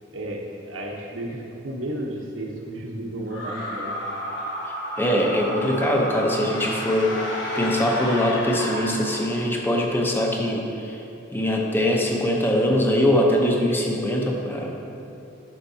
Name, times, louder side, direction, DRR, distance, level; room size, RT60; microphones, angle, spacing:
voice 1, 0.0-4.0, right 1 dB, 85° right, -1 dB, 1.1 m, -33 dB
Dragon Death, 3.3-9.7, equal, 70° left, 1.4 m, -32 dB
voice 2, 5.0-7.1 7.5-11.0 11.3-14.7, left 1 dB, 10° left, -1 dB, 0.8 m, -22 dB
11.0 x 5.9 x 2.8 m, 2.8 s
head